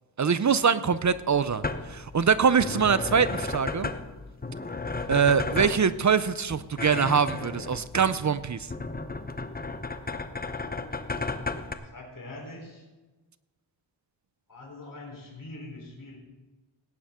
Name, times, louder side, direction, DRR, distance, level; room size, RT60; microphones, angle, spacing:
voice 1, 0.2-1.6 1.9-3.9 5.1-8.7, right 6 dB, 40° right, 15 dB, 0.6 m, -23 dB
sound 1, 1.0-11.7, left 3 dB, 20° left, 0.9 m, -34 dB
voice 2, 9.9-10.3 11.9-12.9 14.5-16.2, left 2 dB, 45° left, 0 dB, 3.9 m, -43 dB
18.0 x 10.0 x 3.7 m, 1.2 s
cardioid pair, 70°, 45 cm